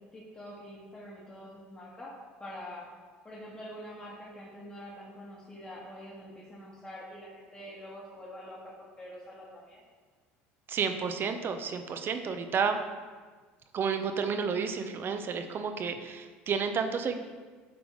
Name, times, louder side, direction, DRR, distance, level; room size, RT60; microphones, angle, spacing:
voice 1, 0.1-2.1 2.4-2.8 3.2-9.8, equal, 20° left, -6 dB, 1.4 m, -45 dB
voice 2, 10.7-12.8 13.7-17.2, right 6 dB, 45° right, 7 dB, 0.6 m, -31 dB
9.1 x 3.5 x 3.1 m, 1.4 s
supercardioid pair, 85°, 5 cm